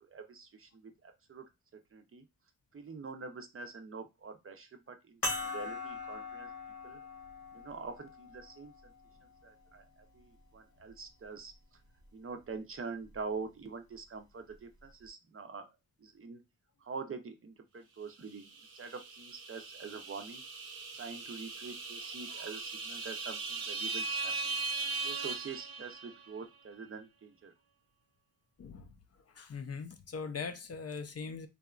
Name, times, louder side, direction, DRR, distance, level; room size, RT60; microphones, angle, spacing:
voice 1, 0.0-1.4 1.9-2.2 2.7-6.5 6.8-7.0 7.5-8.7 9.4-9.8 10.1-11.5 12.1-15.7 16.0-16.4 16.8-18.5 18.7-20.4 20.9-24.6 25.0-27.5, right 4 dB, 40° right, 0.5 m, -45 dB
sound 1, 5.2-10.0 10.8-10.9 13.0-13.2, left 2 dB, 90° left, 1.1 m, -41 dB
sound 2, 18.3-26.3, right 4 dB, 75° right, 0.7 m, -39 dB
voice 2, 28.6-28.9 29.4-31.5, left 5 dB, 45° left, 0.4 m, -41 dB
2.8 x 2.2 x 2.3 m
cardioid pair, 70°, 36 cm